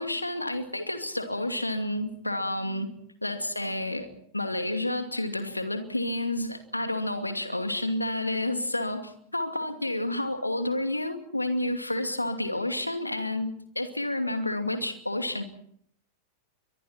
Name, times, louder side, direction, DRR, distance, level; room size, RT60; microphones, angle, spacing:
voice 1, 0.0-2.9 3.2-15.4, left 1 dB, 85° left, 7 dB, 2.5 m, -30 dB
30.0 x 24.0 x 4.4 m, 0.63 s
figure-of-eight pair, 90°, 0 cm